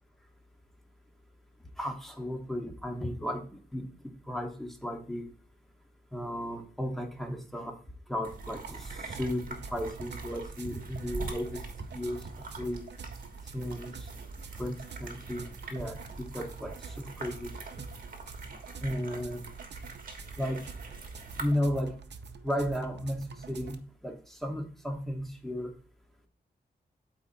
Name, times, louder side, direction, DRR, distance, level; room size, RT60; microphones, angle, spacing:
voice 1, 1.8-3.9 4.3-5.3 6.1-7.8 8.1-11.6 11.9-12.8 13.5-14.1 14.6-17.6 18.8-19.5 20.4-20.7 21.4-22.0 22.4-25.8, equal, ahead, 3 dB, 1.2 m, -35 dB
sound 1, 8.2-21.5, right 3 dB, 50° right, 1.4 m, -44 dB
sound 2, 8.4-23.8, right 5 dB, 75° right, 0.6 m, -46 dB
12.5 x 4.3 x 2.7 m, 0.39 s
wide cardioid pair, 115°, 18 cm